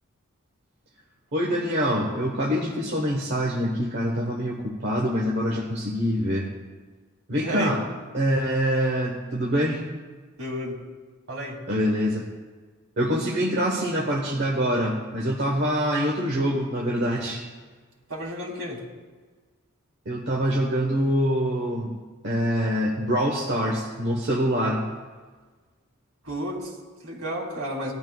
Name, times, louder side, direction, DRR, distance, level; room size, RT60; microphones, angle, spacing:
voice 1, 1.3-6.5 7.3-7.8 8.1-9.8 11.7-12.3 13.0-17.4 20.0-21.9 22.2-24.8, equal, 55° right, -2 dB, 1.3 m, -25 dB
voice 2, 7.3-7.7 10.4-10.9 11.3-11.7 18.1-18.9 26.2-27.9, equal, 75° right, -2 dB, 2.8 m, -32 dB
18.5 x 12.0 x 2.4 m, 1.4 s
head